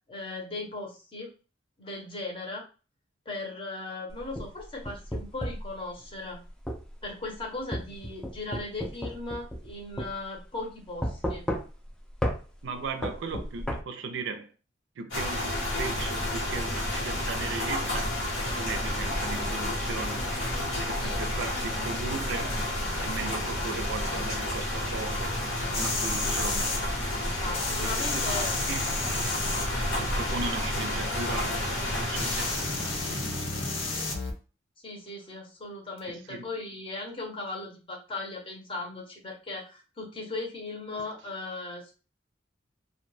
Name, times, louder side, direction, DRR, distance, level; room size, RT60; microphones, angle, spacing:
voice 1, 0.0-1.3 1.8-2.6 3.3-6.4 7.0-11.5 21.0-21.2 27.4-28.7 34.8-41.9, left 2 dB, 30° left, 0.7 m, -38 dB
sound 1, 4.1-5.7 6.7-6.8 7.7-9.7 10.0-10.1 11.0-11.9 12.2-12.4 13.0-13.8, equal, 5° left, 0.3 m, -32 dB
voice 2, 12.6-14.5 15.0-18.2 18.6-20.3 20.9-22.6 23.0-25.4 25.7-26.7 27.8-28.2 28.7-28.8 30.0-31.5 31.9-33.4 36.0-36.5, right 4 dB, 70° right, 0.4 m, -37 dB
sound 2, 15.1-33.4, left 1 dB, 70° left, 1.1 m, -30 dB
sound 3, 25.7-26.8 27.5-30.4 31.5-31.6 32.1-34.3 36.0-36.1, left 3 dB, 90° left, 0.7 m, -32 dB
2.2 x 2.2 x 3.1 m
head